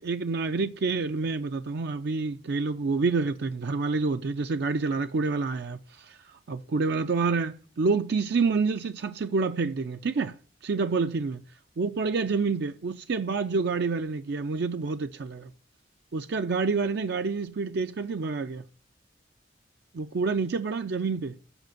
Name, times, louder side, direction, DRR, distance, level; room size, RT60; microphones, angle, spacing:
voice 1, 0.0-10.4 10.6-11.4 11.8-15.5 16.1-18.7 19.9-21.4, right 4 dB, 65° right, 0.5 m, -28 dB
8.0 x 5.1 x 7.6 m
head